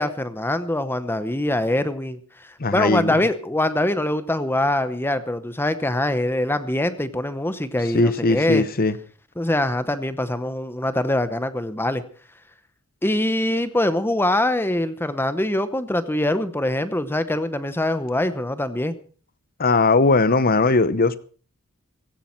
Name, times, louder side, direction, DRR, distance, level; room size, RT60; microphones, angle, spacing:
voice 1, 0.0-8.7 9.4-12.0 13.0-18.9, left 1 dB, 10° left, 0.8 m, -23 dB
voice 2, 2.6-3.2 7.9-9.0 19.6-21.2, left 3 dB, 40° left, 0.9 m, -19 dB
17.0 x 15.0 x 4.4 m
head